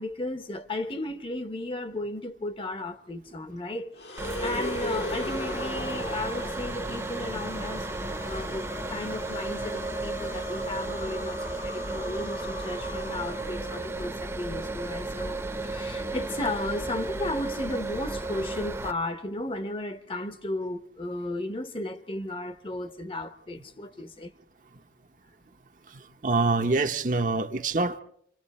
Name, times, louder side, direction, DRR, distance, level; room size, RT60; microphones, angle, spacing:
voice 1, 0.0-4.0 4.4-15.4 15.6-24.3, left 2 dB, 30° left, 1.0 m, -34 dB
sound 1, 3.9-14.2, left 2 dB, 70° left, 1.7 m, -38 dB
sound 2, 4.2-18.9, right 2 dB, 15° right, 0.9 m, -34 dB
voice 2, 25.9-28.0, right 3 dB, 45° right, 0.9 m, -26 dB
28.0 x 26.0 x 4.3 m
head